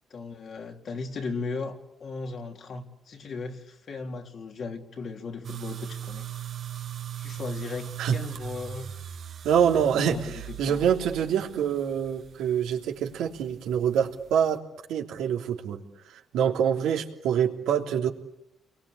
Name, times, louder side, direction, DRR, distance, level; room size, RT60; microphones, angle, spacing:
voice 1, 0.1-6.3 7.2-8.9 9.7-10.9, left 4 dB, 55° left, 3 dB, 3.7 m, -37 dB
sound 1, 5.4-14.6, right 10 dB, 55° right, 1.9 m, -39 dB
voice 2, 9.4-14.6 14.9-15.8 16.3-18.1, right 8 dB, 85° right, 1 dB, 3.3 m, -25 dB
29.5 x 23.0 x 8.6 m, 0.84 s
cardioid pair, 90°, 0 cm